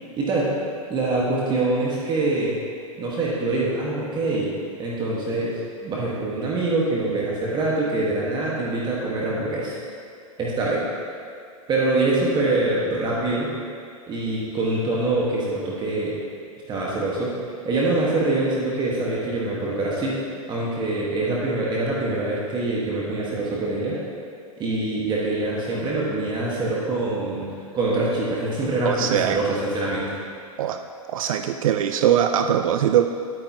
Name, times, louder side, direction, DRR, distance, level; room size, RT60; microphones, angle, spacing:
voice 1, 0.2-0.5 0.9-2.5 3.0-4.5 4.8-9.8 10.4-10.9 11.7-13.5 14.1-16.2 16.7-17.3 17.6-20.1 20.5-24.0 24.6-27.5 27.7-30.2, right 2 dB, 25° right, -5 dB, 1.6 m, -24 dB
voice 2, 28.8-29.4 30.6-30.8 31.1-33.1, right 10 dB, 65° right, 8 dB, 0.5 m, -21 dB
11.0 x 9.0 x 3.0 m, 2.3 s
hypercardioid pair, 120°, 19 cm